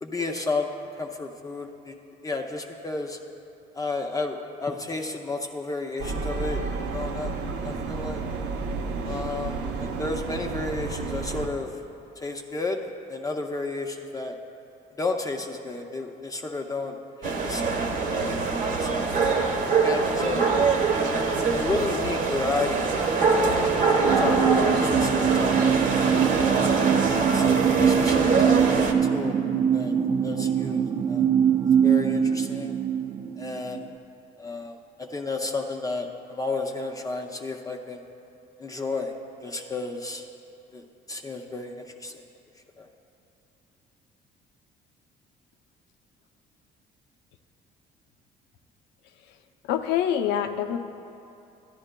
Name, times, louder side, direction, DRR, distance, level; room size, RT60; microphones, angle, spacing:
voice 1, 0.0-0.7 1.0-2.0 2.2-3.2 3.7-6.6 6.9-7.3 7.6-8.2 9.0-11.8 12.2-14.4 15.0-17.9 18.1-18.5 18.8-19.1 19.8-20.4 21.5-22.9 23.3-25.8 26.4-27.0 27.3-29.4 29.7-29.9 30.2-31.3 31.8-32.7 33.4-33.8 34.4-38.0 38.6-39.1 39.4-40.3 40.7-42.2 42.8-42.9, left 3 dB, 20° left, 3 dB, 0.5 m, -32 dB
sound 1, 6.0-11.5, right 4 dB, 75° right, 0.7 m, -31 dB
sound 2, 17.2-28.9, right 4 dB, 50° right, 1.0 m, -24 dB
sound 3, 24.1-33.9, right 8 dB, 30° right, 0.4 m, -23 dB
voice 2, 49.6-50.8, left 10 dB, 90° left, 7 dB, 0.6 m, -25 dB
13.5 x 11.0 x 2.2 m, 2.8 s
cardioid pair, 110°, 17 cm